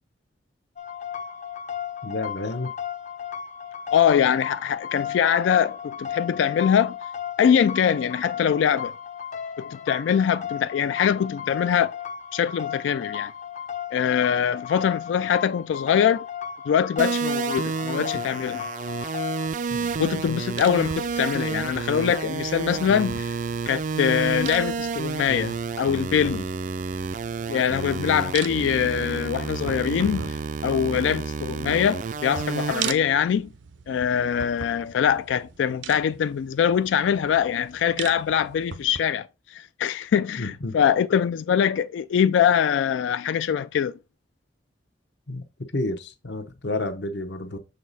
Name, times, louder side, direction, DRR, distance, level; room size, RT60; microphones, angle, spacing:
sound 1, 0.8-19.5, left 8 dB, 40° left, 0.6 m, -35 dB
voice 1, 2.0-2.7 19.7-20.0 40.4-40.8 45.3-45.4 45.7-47.6, left 2 dB, 70° left, 0.9 m, -30 dB
voice 2, 3.9-7.0 7.4-8.9 9.6-11.9 12.3-13.3 13.9-16.3 16.7-18.7 20.0-23.3 23.7-26.5 27.5-30.4 30.6-33.5 33.9-44.0, left 8 dB, 85° left, 0.3 m, -23 dB
sound 2, 17.0-32.9, right 5 dB, 40° right, 0.3 m, -30 dB
sound 3, 19.5-39.0, right 7 dB, 85° right, 0.6 m, -41 dB
6.6 x 4.0 x 4.1 m
head